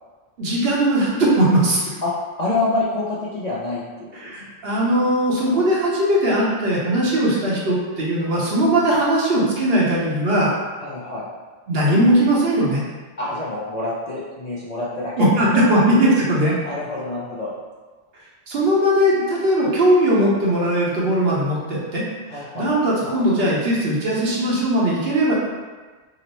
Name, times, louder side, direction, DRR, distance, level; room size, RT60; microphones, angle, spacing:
voice 1, 0.4-1.9 4.1-10.5 11.7-12.8 15.2-16.5 18.5-22.0 22.3-25.3, right 1 dB, 60° right, -5 dB, 0.9 m, -19 dB
voice 2, 2.4-3.8 4.2-4.5 10.8-11.3 13.2-15.3 15.5-15.7 16.6-17.5 22.3-22.7, left 2 dB, 50° left, -8 dB, 0.5 m, -26 dB
2.9 x 2.0 x 4.0 m, 1.3 s
omnidirectional pair, 1.2 m